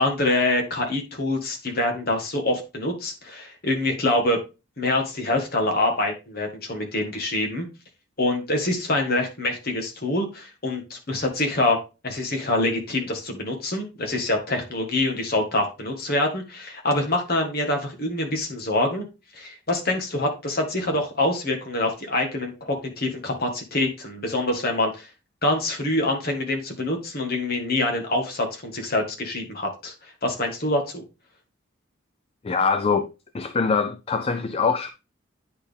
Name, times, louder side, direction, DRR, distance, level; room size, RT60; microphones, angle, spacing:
voice 1, 0.0-4.4 4.8-7.7 8.2-11.8 12.0-19.0 19.4-25.1 25.4-31.0, left 2 dB, 45° left, 1.7 m, -25 dB
voice 2, 32.4-33.1 33.3-34.9, left 5 dB, 30° left, 0.4 m, -23 dB
9.5 x 4.2 x 3.4 m
head